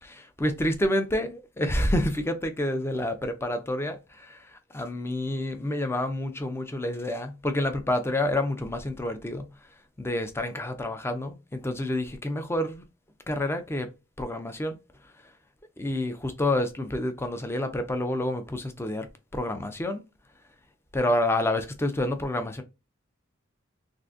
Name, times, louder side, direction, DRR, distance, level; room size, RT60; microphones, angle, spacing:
voice 1, 0.0-9.5 10.0-12.8 13.3-13.9 14.2-14.8 15.8-19.1 19.3-20.0 20.9-22.6, left 1 dB, 10° left, 0.4 m, -28 dB
3.6 x 2.5 x 2.4 m
head